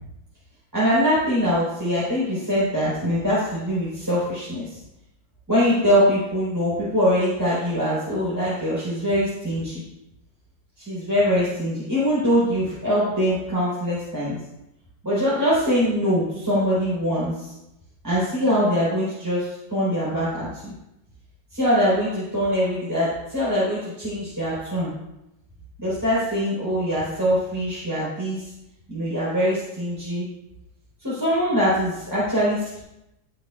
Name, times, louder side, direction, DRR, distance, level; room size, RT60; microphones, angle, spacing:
voice 1, 0.7-4.8 5.5-9.8 10.8-14.3 15.0-17.5 18.0-20.7 21.5-24.9 25.8-28.5 28.9-30.3 31.0-32.8, equal, 10° right, -10 dB, 3.8 m, -23 dB
17.5 x 6.6 x 2.4 m, 0.90 s
omnidirectional pair, 2.1 m